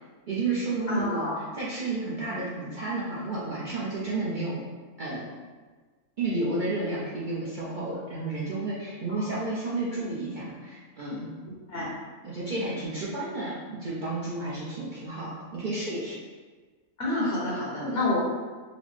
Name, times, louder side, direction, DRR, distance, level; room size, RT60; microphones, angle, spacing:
voice 1, 0.3-4.6 5.0-5.3 6.2-11.3 12.2-16.2 17.8-17.9, right 2 dB, 55° right, -7 dB, 0.5 m, -31 dB
voice 2, 0.9-1.4 9.1-9.2 11.7-11.9 17.0-18.2, left 2 dB, 55° left, -6 dB, 0.8 m, -28 dB
4.0 x 2.0 x 3.1 m, 1.4 s
omnidirectional pair, 1.4 m